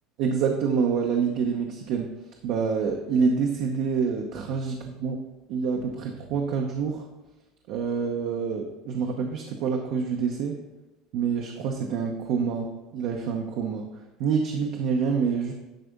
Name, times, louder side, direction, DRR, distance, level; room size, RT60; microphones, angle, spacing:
voice 1, 0.2-2.1 2.4-5.2 5.5-7.0 7.7-10.6 11.1-13.9 14.2-15.5, right 6 dB, 65° right, 2 dB, 0.8 m, -27 dB
10.0 x 3.5 x 5.3 m, 1.1 s
supercardioid pair, 125°, 0 cm